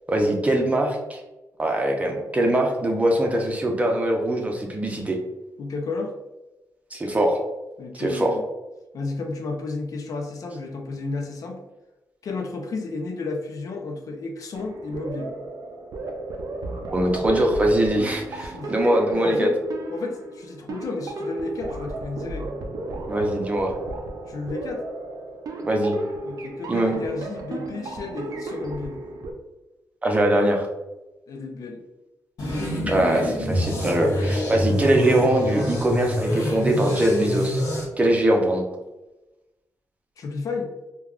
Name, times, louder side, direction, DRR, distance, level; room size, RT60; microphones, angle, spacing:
voice 1, 0.1-1.2 1.6-5.2 6.9-7.4 7.9-8.3 16.9-19.5 23.1-23.7 25.6-25.9 26.7-26.9 30.0-30.7 32.9-37.6 38.0-38.6, right 1 dB, 25° right, 1 dB, 0.6 m, -22 dB
voice 2, 5.6-6.1 7.8-8.4 8.9-11.6 12.2-15.3 18.4-19.5 19.9-22.5 24.3-24.8 26.2-29.0 31.3-31.8 40.2-40.7, left 3 dB, 65° left, 3 dB, 0.4 m, -32 dB
sound 1, 14.5-29.3, right 2 dB, 75° right, 0.4 m, -34 dB
sound 2, 32.4-37.8, left 1 dB, 85° left, 1.1 m, -26 dB
3.3 x 2.3 x 2.4 m, 1.0 s
cardioid pair, 95°, 6 cm